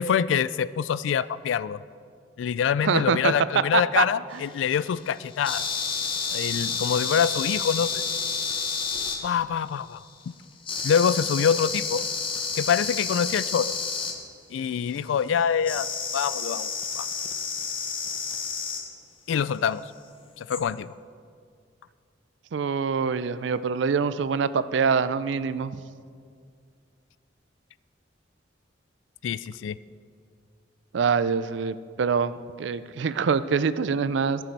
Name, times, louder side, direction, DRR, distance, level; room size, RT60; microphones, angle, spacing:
voice 1, 0.0-1.8 2.4-5.6 6.3-8.0 9.2-10.0 10.8-12.0 12.6-13.8 14.5-15.9 16.1-17.1 19.3-19.8 20.4-20.9 29.2-29.8, left 7 dB, 80° left, 17 dB, 0.3 m, -25 dB
voice 2, 2.8-3.3 3.7-4.0 4.3-4.4 22.5-25.8 30.9-32.3 32.6-34.4, right 6 dB, 70° right, 15 dB, 0.4 m, -25 dB
sound 1, 4.3-9.6 10.6-14.2 15.6-18.9 20.5-20.6, left 5 dB, 30° left, 0.9 m, -30 dB
15.0 x 6.9 x 4.6 m, 2.2 s
head